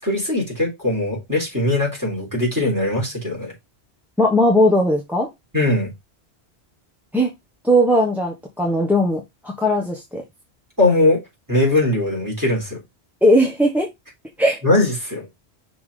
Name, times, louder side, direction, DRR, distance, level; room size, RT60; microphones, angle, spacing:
voice 1, 0.0-3.5 5.5-5.9 10.8-11.2 11.5-12.8 14.6-15.3, left 2 dB, 15° right, 3.9 m, -20 dB
voice 2, 4.2-5.3 7.1-7.3 7.6-10.2 13.2-13.9 14.4-14.6, equal, ahead, 1.2 m, -18 dB
5.9 x 3.9 x 5.0 m
omnidirectional pair, 1.1 m